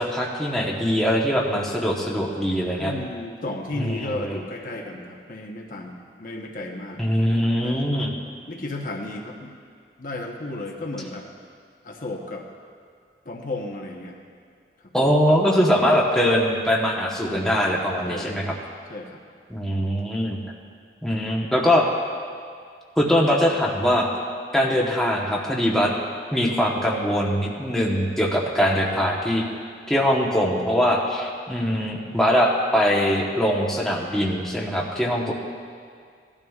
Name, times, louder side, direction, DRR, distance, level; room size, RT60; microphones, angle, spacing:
voice 1, 0.0-2.9 3.8-4.4 7.0-8.1 14.9-18.5 19.5-20.4 21.0-21.9 23.0-24.1 24.5-25.9 26.3-29.4 29.9-35.3, equal, 5° left, -3 dB, 1.0 m, -22 dB
voice 2, 2.8-7.0 7.6-7.8 8.5-9.5 10.0-11.3 11.8-12.5 13.2-14.2 14.8-15.1 17.2-17.5 18.0-18.4 18.9-19.2, left 2 dB, 50° left, 0 dB, 1.0 m, -34 dB
17.5 x 12.5 x 2.4 m, 2.2 s
head